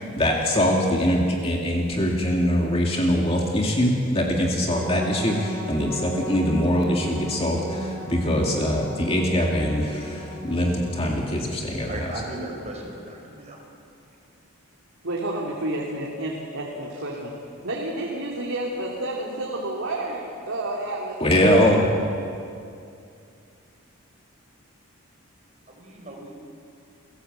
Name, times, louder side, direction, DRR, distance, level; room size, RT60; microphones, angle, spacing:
voice 1, 0.0-12.1 21.2-21.9, equal, 25° left, -1 dB, 2.3 m, -23 dB
sound 1, 4.7-11.3, right 1 dB, ahead, 5.6 m, -35 dB
voice 2, 11.9-13.6 25.7-26.4, right 1 dB, 30° right, 0 dB, 5.1 m, -37 dB
voice 3, 15.0-17.3 17.6-21.7 22.0-22.1, right 1 dB, 70° right, -3 dB, 2.9 m, -30 dB
29.0 x 16.5 x 8.1 m, 2.5 s
head